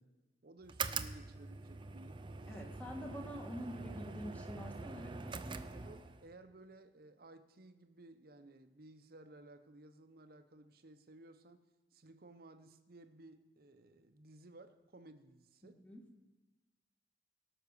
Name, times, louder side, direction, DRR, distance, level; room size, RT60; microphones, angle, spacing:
voice 1, 0.4-2.7 5.7-15.8, right 2 dB, 55° right, 0.8 m, -58 dB
sound 1, 0.6-6.3, right 4 dB, 25° right, 0.5 m, -44 dB
voice 2, 2.5-5.9 15.6-16.0, equal, 10° left, 1.7 m, -47 dB
18.0 x 6.1 x 6.7 m
head